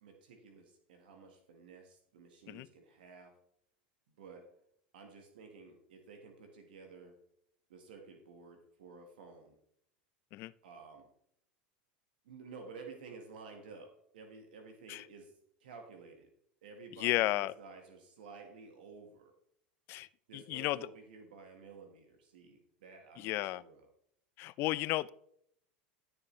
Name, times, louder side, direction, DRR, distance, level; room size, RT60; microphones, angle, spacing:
voice 1, 0.0-3.3 4.2-4.5 4.9-7.2 7.7-9.6 10.6-11.1 12.2-15.3 15.6-16.3 16.6-19.3 20.3-23.9, right 4 dB, 75° right, 4 dB, 1.5 m, -53 dB
voice 2, 16.9-17.6 19.9-20.1 20.3-20.9 23.2-23.6 24.4-25.1, left 17 dB, 50° left, 19 dB, 0.4 m, -33 dB
12.0 x 7.1 x 3.2 m, 0.69 s
hypercardioid pair, 85°, 5 cm